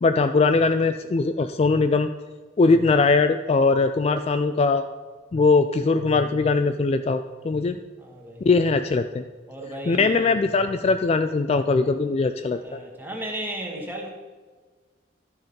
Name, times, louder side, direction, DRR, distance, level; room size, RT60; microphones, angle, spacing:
voice 1, 0.0-2.1 2.6-4.9 5.3-7.8 8.4-9.2 9.9-12.8, left 3 dB, 35° left, 8 dB, 0.3 m, -21 dB
voice 2, 8.0-8.4 9.5-10.3 12.5-14.1, right 1 dB, 10° right, 0 dB, 1.5 m, -34 dB
12.0 x 5.5 x 5.2 m, 1.4 s
head